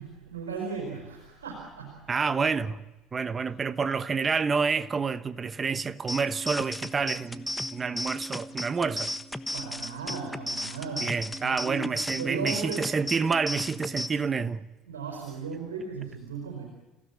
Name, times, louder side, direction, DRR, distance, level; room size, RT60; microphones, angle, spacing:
voice 1, 0.0-2.1 9.5-11.1 11.4-11.9 12.2-12.9 14.9-16.6, right 5 dB, 80° right, 4.6 m, -36 dB
voice 2, 2.1-2.8 3.1-9.1 11.0-14.7, right 5 dB, 30° right, 1.2 m, -28 dB
sound 1, 6.1-14.1, left 1 dB, 5° left, 1.3 m, -35 dB
29.5 x 16.5 x 8.6 m
hypercardioid pair, 60°, 0 cm